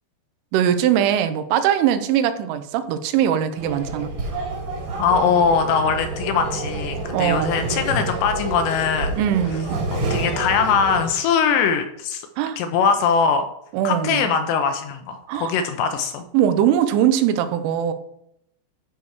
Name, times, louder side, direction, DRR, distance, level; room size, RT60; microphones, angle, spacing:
voice 1, 0.5-4.1 7.1-7.7 9.2-9.8 12.4-12.6 13.7-14.3 15.3-15.5 16.3-17.9, right 10 dB, 90° right, 10 dB, 3.3 m, -21 dB
sound 1, 3.6-11.0, right 2 dB, 50° right, 2.4 m, -28 dB
voice 2, 5.0-9.2 9.9-12.3 12.6-13.4 13.8-16.2, left 6 dB, 80° left, 7 dB, 2.6 m, -21 dB
12.5 x 5.0 x 4.8 m, 0.75 s
omnidirectional pair, 5.5 m